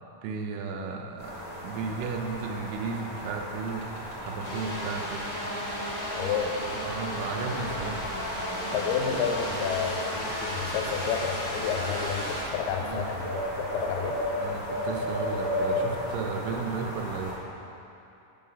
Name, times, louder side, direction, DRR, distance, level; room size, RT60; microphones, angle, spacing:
voice 1, 0.2-5.3 6.8-8.0 12.8-13.2 14.4-17.4, right 5 dB, 85° right, 3 dB, 2.2 m, -34 dB
sound 1, 1.2-17.3, left 1 dB, 30° left, 1.9 m, -35 dB
sound 2, 3.7-4.7 5.3-6.1 6.5-9.4 10.1-11.2 11.7-12.3, right 2 dB, 60° right, 1.3 m, -47 dB
sound 3, 4.4-12.4, equal, 60° left, 0.5 m, -34 dB
voice 2, 6.2-6.6 8.7-14.2, left 7 dB, 85° left, 3 dB, 2.3 m, -30 dB
7.4 x 5.4 x 5.6 m, 2.8 s
omnidirectional pair, 3.9 m